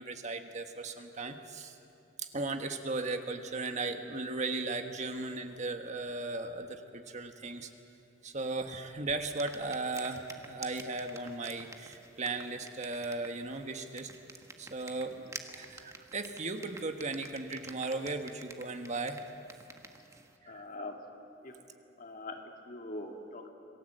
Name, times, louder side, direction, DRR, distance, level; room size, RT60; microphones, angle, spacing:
voice 1, 0.0-1.7 2.2-7.7 8.2-14.1 14.6-19.2 20.4-20.7, right 3 dB, 40° right, 6 dB, 1.4 m, -37 dB
sound 1, 9.3-20.4, right 3 dB, 15° right, 1.3 m, -50 dB
voice 2, 20.5-21.0 21.4-21.5 22.0-23.5, left 2 dB, 50° left, 3 dB, 2.4 m, -43 dB
27.0 x 19.0 x 7.9 m, 3.0 s
head